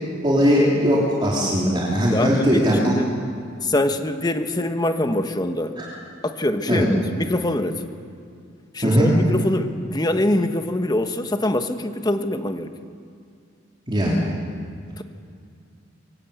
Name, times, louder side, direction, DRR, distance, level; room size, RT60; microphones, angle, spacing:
voice 1, 0.2-2.9 5.8-5.9 6.7-6.8 8.8-9.1 13.9-14.2, equal, 25° right, -5 dB, 3.2 m, -19 dB
voice 2, 2.1-3.0 3.6-5.7 6.2-7.8 8.7-12.7 15.0-15.1, left 1 dB, 20° left, 7 dB, 1.2 m, -24 dB
23.5 x 17.0 x 8.4 m, 2.3 s
head